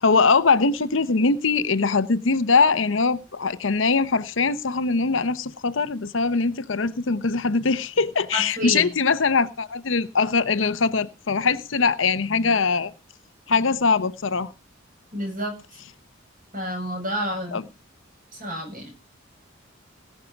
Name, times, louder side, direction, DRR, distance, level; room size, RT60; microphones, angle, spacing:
voice 1, 0.0-12.9 13.5-14.5 17.5-17.6, left 4 dB, 75° left, 0.8 m, -22 dB
voice 2, 8.3-8.9 15.1-15.8 16.5-17.7 18.3-18.9, equal, 40° right, 7.6 m, -30 dB
18.0 x 6.6 x 5.8 m
head